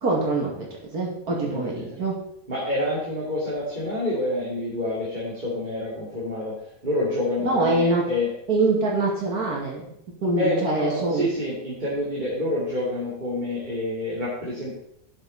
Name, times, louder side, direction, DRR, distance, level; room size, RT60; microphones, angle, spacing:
voice 1, 0.0-0.7 0.9-2.1 7.4-8.0 8.5-9.9 10.2-11.3, right 2 dB, 85° right, -2 dB, 2.9 m, -24 dB
voice 2, 1.4-2.0 2.5-6.6 6.8-8.3 10.4-14.8, left 1 dB, 30° right, -6 dB, 2.7 m, -28 dB
12.5 x 6.6 x 4.2 m, 0.75 s
omnidirectional pair, 1.6 m